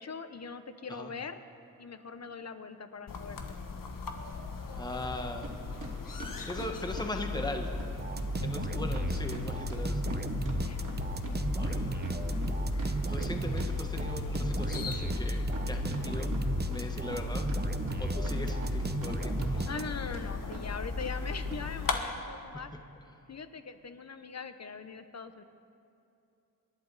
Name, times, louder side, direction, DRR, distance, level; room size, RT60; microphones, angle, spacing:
voice 1, 0.0-1.4 1.8-3.4 6.2-6.5 8.4-8.5 10.6-10.9 12.7-13.0 19.7-22.7 23.3-25.4, left 5 dB, 50° left, 10 dB, 1.0 m, -42 dB
sound 1, 3.1-22.0, left 5 dB, 65° left, 1.3 m, -36 dB
voice 2, 4.8-5.6 6.2-7.7 8.4-10.2 11.5-11.9 13.1-16.3 16.7-17.5 18.0-19.9, left 2 dB, 10° left, 3 dB, 1.2 m, -39 dB
sound 2, 5.4-5.5 5.8-7.5 7.8-7.9 8.2-8.3 8.5-8.7 8.9-11.4 11.6-14.4 14.7-14.8 15.1-16.0 16.3-17.2 17.5-19.1 19.4-19.9 20.1-20.3 20.5-20.6 21.0-21.1 21.5-21.6, right 3 dB, 60° right, 2.8 m, -43 dB
sound 3, 8.0-20.2, right 4 dB, 30° right, 0.8 m, -35 dB
27.5 x 11.0 x 4.2 m, 2.7 s
wide cardioid pair, 90°, 35 cm